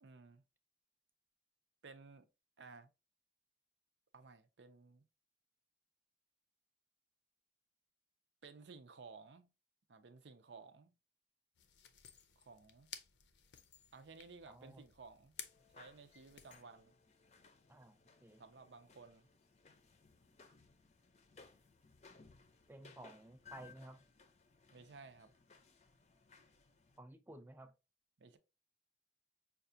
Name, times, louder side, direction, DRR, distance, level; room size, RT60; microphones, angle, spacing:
voice 1, 0.0-0.4 1.8-2.3 2.6-2.9 4.1-5.0 8.4-9.5 9.9-10.9 12.4-12.9 13.9-15.4 15.7-16.9 18.4-19.3 24.7-25.3 28.2-28.4, right 4 dB, 90° right, 0.6 m, -56 dB
sound 1, 11.5-16.6, left 8 dB, 85° left, 0.6 m, -56 dB
voice 2, 14.5-14.8 17.7-18.4 22.7-24.0 27.0-27.7, right 1 dB, 10° right, 0.4 m, -55 dB
sound 2, 15.4-27.0, left 4 dB, 40° left, 0.5 m, -63 dB
5.7 x 2.4 x 2.6 m
head